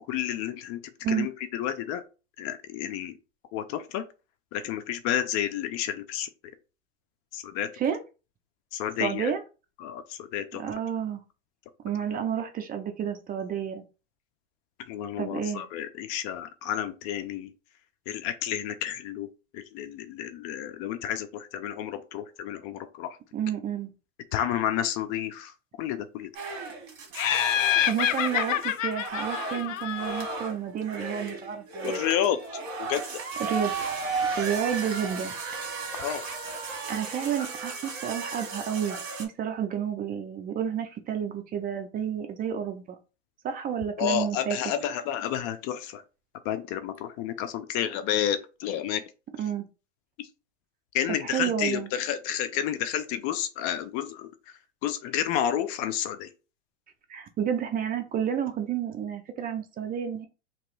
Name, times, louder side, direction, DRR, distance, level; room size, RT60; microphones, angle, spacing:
voice 1, 0.1-0.8 1.1-2.0 2.4-3.1 3.5-4.0 4.5-6.3 7.3-7.7 8.7-9.3 9.8-10.6 14.8-17.5 18.1-19.3 19.5-23.2 24.3-25.5 25.8-26.3 31.8-32.4 32.8-33.2 35.9-36.2 44.0-46.0 46.4-49.0 50.9-54.3 54.8-56.3, left 10 dB, 40° left, 10 dB, 0.5 m, -30 dB
voice 2, 9.0-9.4 10.5-11.2 11.8-13.8 15.2-15.6 23.3-23.9 27.8-32.0 33.4-33.7 34.4-35.3 36.9-43.0 43.4-44.7 49.4-49.7 51.2-51.9 57.1-60.3, right 8 dB, 25° right, 7 dB, 0.5 m, -30 dB
sound 1, 26.3-39.2, right 4 dB, 50° right, 1.7 m, -35 dB
Laughter, 27.2-30.5, left 11 dB, 90° left, 0.6 m, -27 dB
3.0 x 2.9 x 4.5 m, 0.32 s
supercardioid pair, 125°, 38 cm